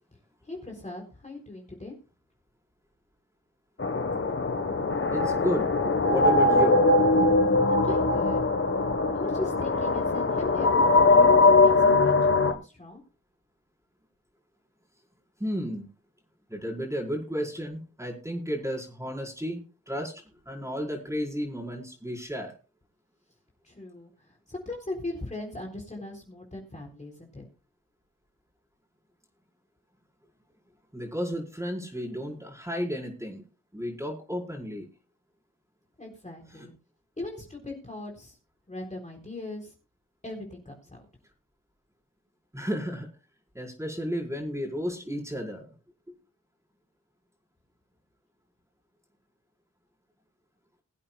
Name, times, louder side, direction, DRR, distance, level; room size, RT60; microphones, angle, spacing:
voice 1, 0.4-2.0 7.7-8.4 9.1-13.0 23.6-27.4 36.0-36.7 37.2-38.4 38.7-39.7 40.2-41.0, left 2 dB, 20° left, 0 dB, 3.9 m, -39 dB
sound 1, 3.8-12.5, left 3 dB, 40° left, 1.6 m, -21 dB
voice 2, 5.1-5.7 6.1-6.8 15.4-15.8 16.5-19.6 19.9-22.6 30.9-33.4 33.7-34.9 36.5-36.7 42.5-43.1 43.5-45.7, equal, 10° right, -1 dB, 5.3 m, -32 dB
22.0 x 8.6 x 2.4 m, 0.33 s
cardioid pair, 50°, 32 cm